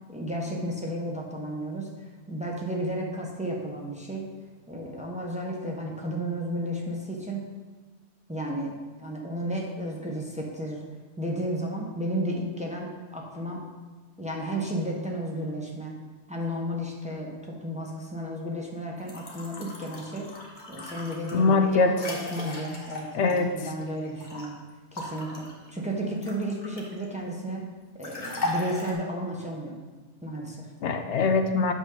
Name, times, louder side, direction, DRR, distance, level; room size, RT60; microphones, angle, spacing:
voice 1, 0.1-4.3 4.7-7.5 8.3-10.8 11.2-13.6 14.2-15.9 16.3-20.3 20.7-24.6 24.9-27.7 28.0-29.7 30.2-30.7, right 1 dB, 5° right, -2 dB, 1.0 m, -33 dB
sound 1, 19.0-24.5 24.9-27.0 28.0-28.9, left 1 dB, 45° left, 1.4 m, -37 dB
voice 2, 21.3-21.9 23.1-23.5 30.8-31.7, left 4 dB, 80° left, 7 dB, 1.0 m, -22 dB
8.3 x 6.2 x 3.9 m, 1.3 s
omnidirectional pair, 1.2 m